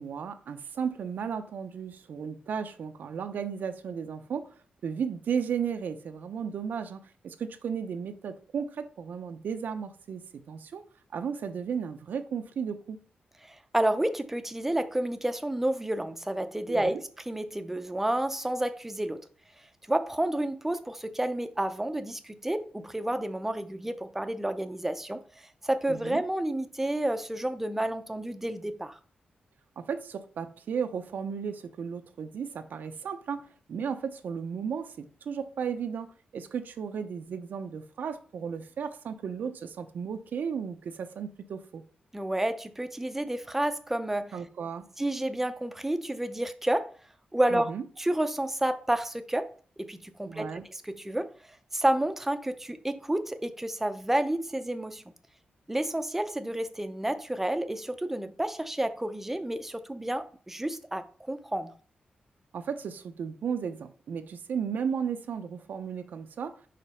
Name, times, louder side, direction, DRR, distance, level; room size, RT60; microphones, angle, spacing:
voice 1, 0.0-4.5 4.8-10.8 11.1-13.0 16.7-17.0 25.9-26.2 29.8-41.8 44.3-44.9 47.5-47.8 50.3-50.6 62.5-66.5, right 7 dB, 75° right, 0.6 m, -34 dB
voice 2, 13.4-17.0 17.3-19.2 19.9-25.2 25.6-29.0 42.1-44.3 45.0-46.9 47.3-47.7 48.0-49.5 49.8-51.3 51.7-55.0 55.7-61.7, right 1 dB, 10° right, 0.6 m, -30 dB
5.1 x 3.8 x 5.6 m
wide cardioid pair, 125°, 3 cm